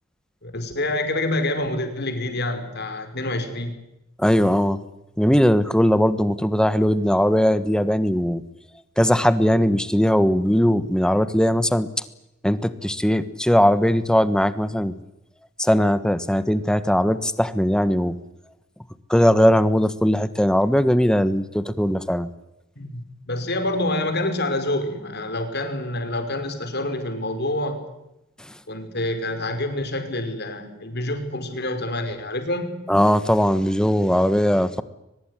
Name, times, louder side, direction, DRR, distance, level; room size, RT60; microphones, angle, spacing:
voice 1, 0.4-3.7 22.8-27.8 28.7-32.8, left 1 dB, 55° left, 7 dB, 5.0 m, -27 dB
voice 2, 4.2-4.8 5.2-8.4 9.0-11.9 12.4-14.9 15.6-18.1 19.1-22.3 32.9-34.8, equal, 5° left, 13 dB, 1.3 m, -19 dB
23.0 x 21.0 x 9.9 m, 0.88 s
head